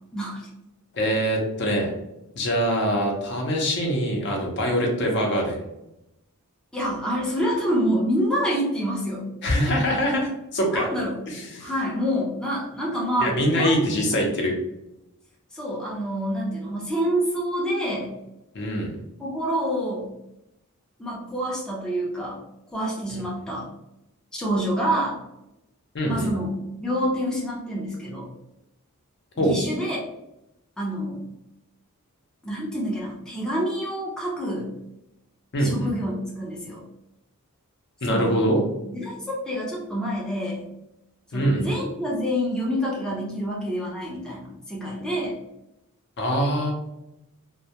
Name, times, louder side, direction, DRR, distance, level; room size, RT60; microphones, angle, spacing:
voice 1, 0.1-0.5 6.7-9.3 10.7-11.2 11.6-13.8 14.1-14.3 15.5-18.2 19.2-20.1 21.0-22.4 22.7-23.7 24.3-25.2 26.0-26.5 26.8-28.3 29.4-30.0 30.8-31.2 32.4-34.7 35.6-36.8 38.1-38.3 38.9-40.7 41.3-45.4, equal, 5° left, -5 dB, 0.4 m, -27 dB
voice 2, 0.9-1.9 2.4-5.6 9.4-10.9 11.3-11.7 13.2-14.5 18.5-18.9 23.1-23.2 25.9-26.3 29.4-29.5 35.5-35.9 38.0-38.6 41.3-41.7 46.2-46.7, equal, 50° left, 0 dB, 0.6 m, -23 dB
2.1 x 2.1 x 2.7 m, 0.87 s
head